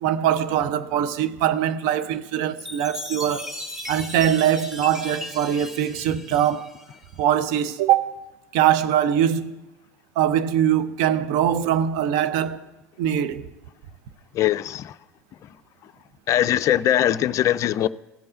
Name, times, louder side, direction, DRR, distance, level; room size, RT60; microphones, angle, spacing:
voice 1, 0.0-3.5 3.9-6.7 7.2-8.3 8.5-9.6 10.2-12.6 13.0-13.5, right 10 dB, 55° right, 0.6 m, -22 dB
Chime, 2.6-7.2, left 1 dB, 5° right, 1.3 m, -37 dB
voice 2, 14.3-14.9 16.3-17.9, left 12 dB, 40° left, 0.4 m, -21 dB
16.0 x 5.4 x 8.7 m
figure-of-eight pair, 65°, 8 cm